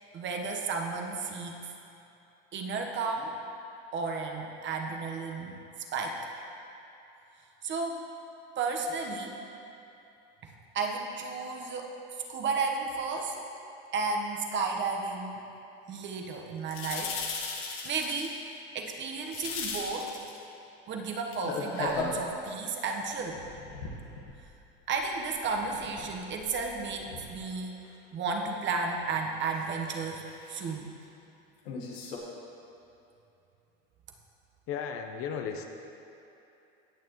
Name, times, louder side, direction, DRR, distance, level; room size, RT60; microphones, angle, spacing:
voice 1, 0.1-1.6 2.5-3.3 3.9-5.6 5.9-6.2 7.6-8.1 8.6-9.4 10.4-11.9 12.3-13.4 13.9-15.4 15.9-17.4 17.8-18.4 18.7-20.1 20.9-23.4 24.9-27.9 28.1-30.9, right 4 dB, 40° right, 2 dB, 1.2 m, -33 dB
sound 1, 16.7-18.4 19.2-20.4 21.3-22.2 22.9-24.6 24.9-27.4 27.8-27.9 29.5-29.7 30.2-30.7 31.6-32.2, left 4 dB, 90° left, 1.5 m, -38 dB
voice 2, 34.7-35.7, left 7 dB, 50° left, 5 dB, 0.8 m, -35 dB
17.0 x 6.7 x 3.1 m, 2.9 s
supercardioid pair, 110°, 30 cm